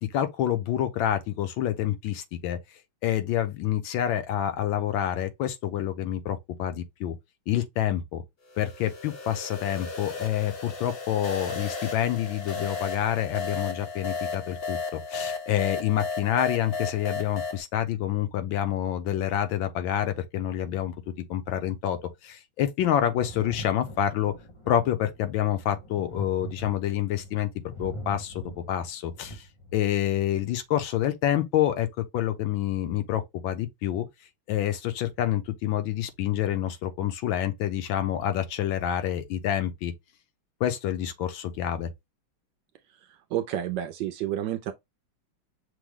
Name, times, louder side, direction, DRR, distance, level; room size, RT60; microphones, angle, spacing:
voice 1, 0.0-2.6 3.0-7.2 7.5-8.2 8.6-24.3 24.7-27.5 27.8-29.5 29.7-34.1 34.5-39.9 40.6-41.9, left 11 dB, 75° left, 1.4 m, -28 dB
sound 1, 8.5-17.6, left 4 dB, 55° left, 0.6 m, -34 dB
Thunder, 23.1-30.5 31.6-31.7, equal, 25° left, 0.7 m, -42 dB
voice 2, 43.0-44.7, right 11 dB, 75° right, 1.1 m, -30 dB
6.1 x 2.1 x 3.6 m
omnidirectional pair, 2.3 m